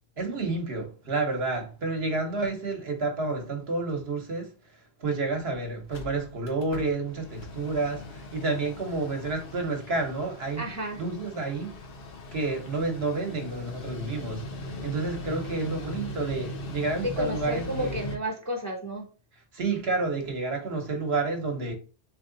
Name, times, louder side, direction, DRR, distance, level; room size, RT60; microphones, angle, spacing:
voice 1, 0.2-4.5 5.0-11.7 12.3-18.0 19.5-21.7, right 3 dB, 65° right, 1.2 m, -30 dB
Mechanical fan, 5.1-5.2 5.5-5.6 5.8-18.2, left 2 dB, 60° left, 0.9 m, -40 dB
voice 2, 10.6-11.0 17.0-19.1, equal, 20° left, 0.7 m, -31 dB
3.5 x 3.3 x 3.8 m
omnidirectional pair, 1.1 m